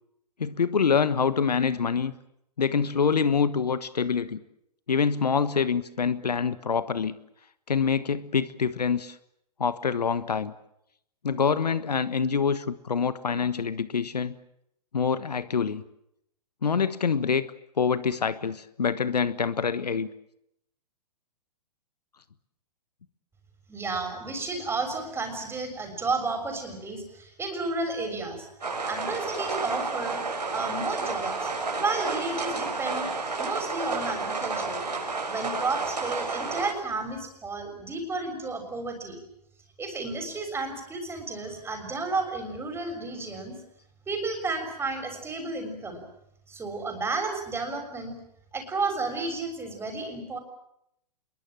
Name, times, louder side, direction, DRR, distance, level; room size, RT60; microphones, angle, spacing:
voice 1, 0.4-2.1 2.6-4.4 4.9-7.2 7.7-9.1 9.6-10.5 11.2-14.4 14.9-15.8 16.6-17.4 17.8-20.1, left 6 dB, 75° left, 14 dB, 1.3 m, -25 dB
voice 2, 23.7-28.5 28.9-30.2 30.5-33.1 33.4-34.9 35.3-39.2 39.8-43.6 44.1-46.0 46.5-48.2 48.5-50.4, right 3 dB, 10° right, 5 dB, 6.5 m, -32 dB
sound 1, 28.6-36.7, right 3 dB, 80° right, 6.9 m, -31 dB
26.5 x 22.5 x 7.6 m, 0.76 s
figure-of-eight pair, 115°, 21 cm